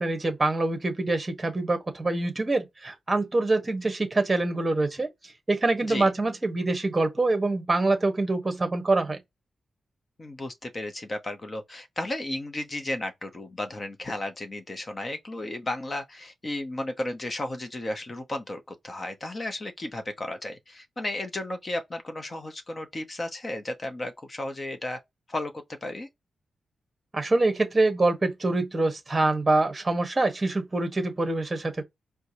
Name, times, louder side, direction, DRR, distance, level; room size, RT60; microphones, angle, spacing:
voice 1, 0.0-5.1 5.5-9.2 27.1-31.8, right 2 dB, 20° right, 1.1 m, -25 dB
voice 2, 10.2-25.0 25.3-26.1, left 1 dB, 25° left, 0.9 m, -34 dB
4.6 x 2.3 x 2.7 m
wide cardioid pair, 150°, 0 cm